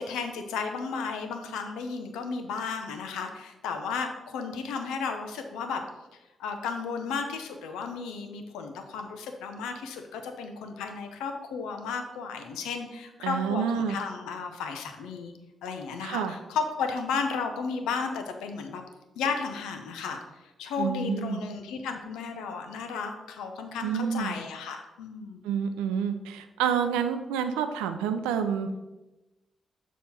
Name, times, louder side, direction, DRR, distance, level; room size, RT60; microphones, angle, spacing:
voice 1, 0.0-5.8 6.4-15.3 15.6-18.8 19.2-20.2 20.6-25.4, left 5 dB, 80° left, 5 dB, 0.6 m, -34 dB
voice 2, 13.2-14.0 16.0-16.3 20.8-21.4 23.8-24.3 25.4-28.7, right 7 dB, 85° right, 8 dB, 0.4 m, -28 dB
6.8 x 3.1 x 5.7 m, 1.0 s
hypercardioid pair, 40°, 0 cm